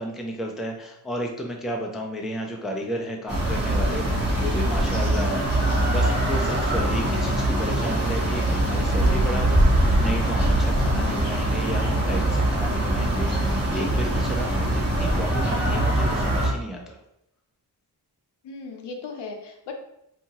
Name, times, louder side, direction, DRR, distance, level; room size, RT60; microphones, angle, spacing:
voice 1, 0.0-5.5 5.9-17.0, equal, ahead, 1 dB, 0.3 m, -33 dB
sound 1, 3.3-16.5, right 1 dB, 25° right, 0.9 m, -22 dB
voice 2, 4.7-5.2 10.9-11.5 18.4-19.7, left 5 dB, 80° left, 3 dB, 0.6 m, -38 dB
2.8 x 2.4 x 2.8 m, 0.80 s
cardioid pair, 95°, 41 cm